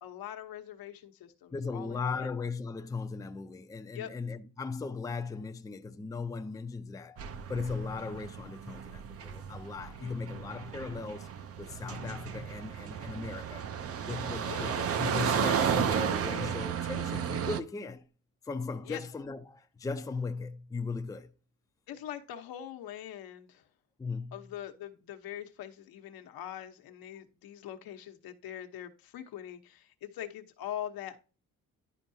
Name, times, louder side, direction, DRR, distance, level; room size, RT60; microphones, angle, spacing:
voice 1, 0.0-2.3 3.9-4.1 10.0-10.4 14.4-14.8 18.8-19.0 21.9-23.6 24.3-31.2, left 11 dB, 80° left, 1.0 m, -43 dB
voice 2, 1.5-7.2 7.5-13.6 14.0-18.0 18.4-21.3 24.0-24.5, left 4 dB, 10° left, 0.5 m, -37 dB
sound 1, 7.2-17.6, right 8 dB, 40° right, 0.6 m, -33 dB
11.0 x 4.6 x 2.7 m
cardioid pair, 135°, 35 cm